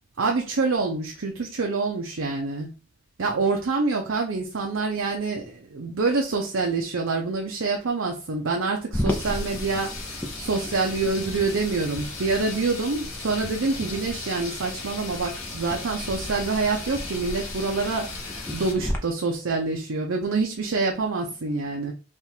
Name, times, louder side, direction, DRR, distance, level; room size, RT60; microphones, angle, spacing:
voice 1, 0.2-2.7 3.2-21.9, right 3 dB, 70° right, 1 dB, 0.6 m, -26 dB
sound 1, 8.9-19.0, left 1 dB, 10° left, 0.6 m, -35 dB
sound 2, 9.1-18.7, left 4 dB, 75° left, 1.4 m, -38 dB
3.6 x 2.4 x 4.4 m, 0.33 s
head